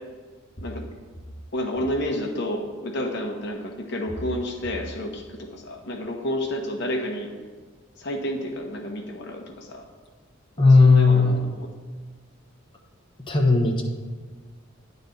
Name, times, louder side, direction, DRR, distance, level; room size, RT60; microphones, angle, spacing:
voice 1, 1.5-7.3 8.0-9.9 10.6-11.7, equal, 55° left, 2 dB, 0.9 m, -30 dB
voice 2, 10.6-11.4 13.3-13.8, left 3 dB, 25° left, -1 dB, 0.9 m, -16 dB
10.0 x 4.0 x 7.0 m, 1.4 s
head